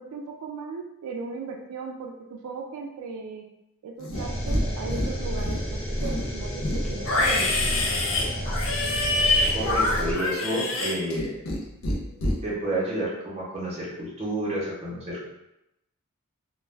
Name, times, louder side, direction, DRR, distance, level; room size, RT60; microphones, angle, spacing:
voice 1, 0.0-3.5 3.8-7.5, right 4 dB, 90° right, 2 dB, 0.3 m, -37 dB
Livestock farm animals working animals, 4.0-4.6 4.9-5.6 6.0-11.6 11.8-12.4, left 2 dB, 60° left, 0.5 m, -26 dB
sound 1, 4.1-10.1, equal, 25° left, 1.0 m, -31 dB
voice 2, 9.3-11.3 12.4-15.3, right 1 dB, 30° right, -6 dB, 0.8 m, -30 dB
2.2 x 2.2 x 3.2 m, 0.88 s
head